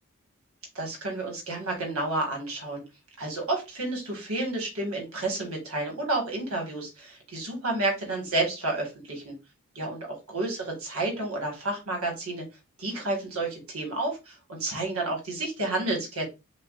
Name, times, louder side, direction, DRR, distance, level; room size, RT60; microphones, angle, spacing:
voice 1, 0.8-2.8 3.2-9.3 9.8-12.4 12.8-16.3, right 2 dB, 85° right, 1 dB, 1.8 m, -30 dB
7.0 x 2.4 x 2.5 m, 0.26 s
head